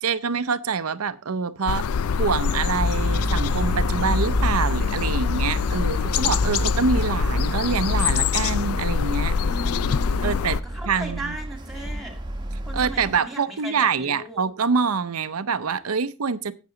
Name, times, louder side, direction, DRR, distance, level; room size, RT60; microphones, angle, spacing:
voice 1, 0.0-1.9 2.2-9.4 10.2-10.6 10.9-11.4 12.7-16.5, right 5 dB, 85° right, 0.7 m, -25 dB
sound 1, 1.7-10.6, left 6 dB, 85° left, 0.4 m, -24 dB
sound 2, 2.7-13.2, right 1 dB, 20° right, 1.1 m, -30 dB
voice 2, 9.3-10.4 10.7-12.2 12.6-14.4, right 2 dB, ahead, 2.3 m, -37 dB
11.0 x 8.2 x 3.9 m
head